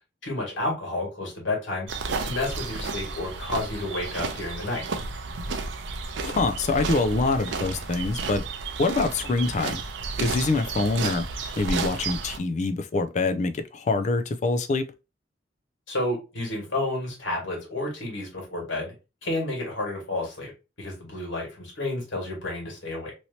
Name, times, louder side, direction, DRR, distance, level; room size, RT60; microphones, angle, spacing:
voice 1, 0.2-2.0 2.2-4.8 15.9-18.9 19.2-20.5 20.8-23.1, left 2 dB, 80° left, 1.8 m, -30 dB
sound 1, 1.9-12.4, right 4 dB, 70° right, 0.5 m, -32 dB
voice 2, 6.2-8.4 8.8-9.8 10.2-11.3 11.6-14.8, left 3 dB, 40° left, 0.4 m, -25 dB
3.1 x 2.8 x 2.7 m
head